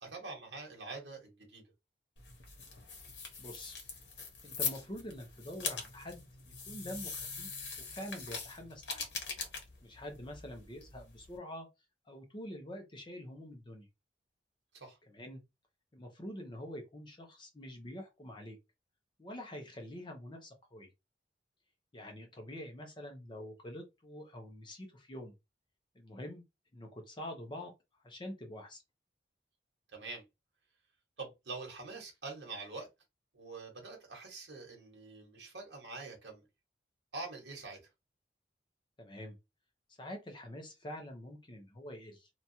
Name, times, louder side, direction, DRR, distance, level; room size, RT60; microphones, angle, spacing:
voice 1, 0.0-1.6 14.7-15.0 29.9-30.2 31.2-32.9 33.3-36.4 37.1-37.8, right 3 dB, 80° right, 1.1 m, -45 dB
sound 1, 2.2-11.4, left 5 dB, 85° left, 0.9 m, -42 dB
voice 2, 3.4-3.8 4.4-9.1 9.8-11.7 12.1-13.9 15.1-15.4 15.9-18.6 19.2-20.9 21.9-25.3 25.9-26.4 26.7-27.7 28.0-28.8 39.0-39.4 40.0-42.3, equal, 25° left, 0.6 m, -46 dB
2.9 x 2.3 x 2.7 m
head